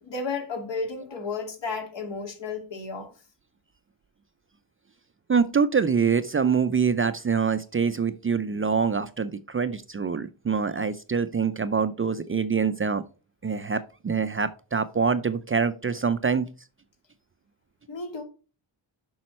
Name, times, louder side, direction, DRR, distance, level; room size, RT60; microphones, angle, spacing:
voice 1, 0.0-3.1 17.9-18.2, left 4 dB, 65° left, 2.5 m, -33 dB
voice 2, 5.3-13.0 13.4-16.5, right 6 dB, 30° right, 0.5 m, -25 dB
7.4 x 5.6 x 4.3 m
cardioid pair, 90°, 48 cm